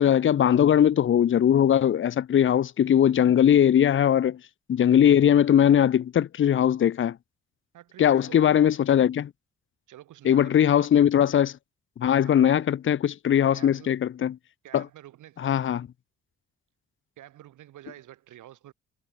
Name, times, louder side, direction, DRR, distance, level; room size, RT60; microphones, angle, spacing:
voice 1, 0.0-4.4 4.7-7.2 8.0-9.3 10.2-11.5 12.0-14.3 14.7-14.8 15.4-15.9, left 9 dB, 40° left, 0.7 m, -20 dB
voice 2, 7.7-8.8 9.9-10.9 12.2-12.7 13.5-13.9 14.6-15.9 17.2-18.7, right 13 dB, 80° right, 6.3 m, -48 dB
cardioid pair, 90°, 30 cm